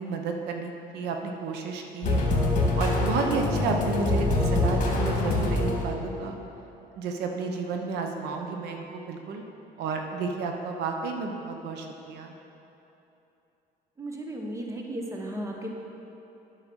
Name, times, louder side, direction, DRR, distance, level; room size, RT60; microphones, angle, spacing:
voice 1, 0.0-2.3 2.7-6.4 7.0-9.4 9.8-12.3, right 4 dB, 80° right, 3 dB, 0.8 m, -31 dB
sound 1, 2.0-6.2, left 2 dB, 50° left, 1.9 m, -25 dB
voice 2, 14.0-15.7, right 1 dB, 15° right, 0 dB, 1.2 m, -35 dB
8.9 x 5.7 x 6.3 m, 2.9 s
cardioid pair, 110°, 17 cm